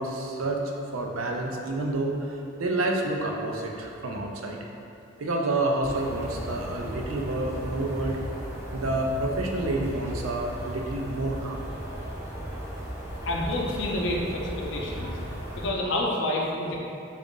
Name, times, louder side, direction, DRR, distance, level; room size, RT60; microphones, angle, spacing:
voice 1, 0.0-4.6 5.2-8.2 8.7-11.6 15.0-15.1, right 2 dB, 90° right, 1 dB, 0.5 m, -29 dB
sound 1, 5.8-15.7, equal, 15° right, 0.5 m, -36 dB
voice 2, 13.2-15.1 15.6-16.8, left 1 dB, 60° left, -2 dB, 0.5 m, -28 dB
3.9 x 2.4 x 3.7 m, 2.7 s
head